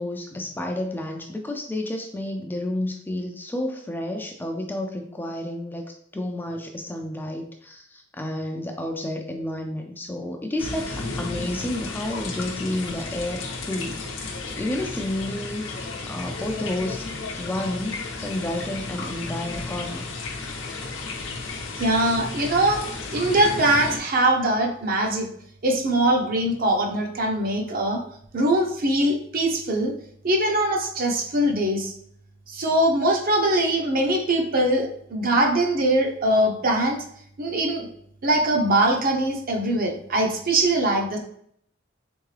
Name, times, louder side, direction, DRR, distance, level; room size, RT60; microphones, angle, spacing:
voice 1, 0.0-17.1 17.4-20.0, left 1 dB, 10° left, 3 dB, 0.3 m, -31 dB
sound 1, 10.6-24.0, left 3 dB, 70° left, 0.7 m, -33 dB
voice 2, 21.8-22.8 23.1-25.3 25.6-28.0 28.3-29.9 30.2-31.9 32.5-37.0 37.4-37.9 38.2-41.2, right 1 dB, 45° right, 2 dB, 0.7 m, -22 dB
3.6 x 3.5 x 3.2 m, 0.66 s
head